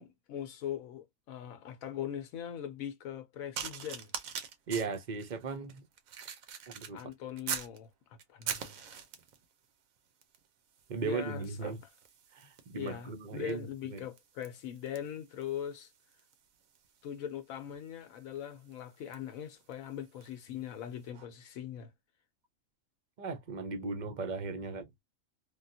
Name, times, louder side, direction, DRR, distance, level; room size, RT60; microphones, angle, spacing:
voice 1, 0.0-4.1 6.9-9.0 11.0-11.7 12.7-15.9 17.0-21.9, left 10 dB, 80° left, 1.0 m, -41 dB
sound 1, 3.5-7.8 8.2-9.4 10.2-10.5 10.7-20.4 21.1-21.3, right 7 dB, 80° right, 1.1 m, -44 dB
voice 2, 4.7-5.8 6.7-7.0 10.9-11.8 12.3-14.0 23.2-24.9, right 4 dB, 45° right, 0.6 m, -37 dB
3.4 x 2.2 x 2.6 m
omnidirectional pair, 1.4 m